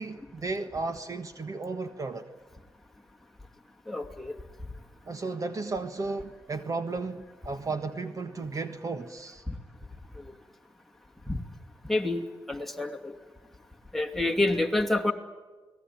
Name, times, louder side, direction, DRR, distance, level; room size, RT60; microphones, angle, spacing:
voice 1, 0.0-2.3 5.0-9.4, right 3 dB, 40° right, 9 dB, 1.6 m, -34 dB
voice 2, 3.9-4.4 9.5-9.6 10.2-10.3 11.3-11.4 11.8-12.2 12.5-13.1 13.9-15.1, left 2 dB, 5° left, 2 dB, 2.8 m, -28 dB
29.0 x 20.0 x 9.4 m, 1.3 s
cardioid pair, 90°, 9 cm